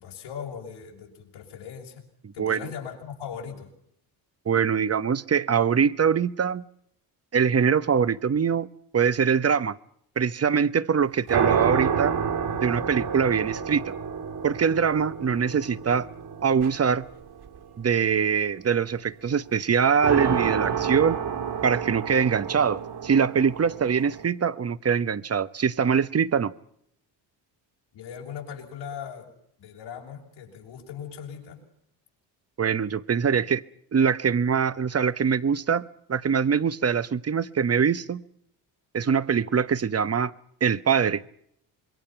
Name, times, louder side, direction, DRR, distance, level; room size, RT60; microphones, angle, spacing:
voice 1, 0.0-2.0 2.3-3.7 27.9-29.3 29.6-31.6, left 7 dB, 80° left, 6.7 m, -39 dB
voice 2, 4.5-6.6 7.3-8.7 8.9-9.8 10.2-12.1 12.6-13.9 14.4-16.1 16.4-17.1 17.8-21.2 21.6-26.5 32.6-33.6 33.9-38.2 38.9-40.3 40.6-41.2, right 6 dB, 30° right, 1.1 m, -23 dB
sound 1, 11.3-17.6 20.0-24.2, right 7 dB, 55° right, 3.0 m, -29 dB
26.5 x 22.5 x 5.9 m
supercardioid pair, 70°, 46 cm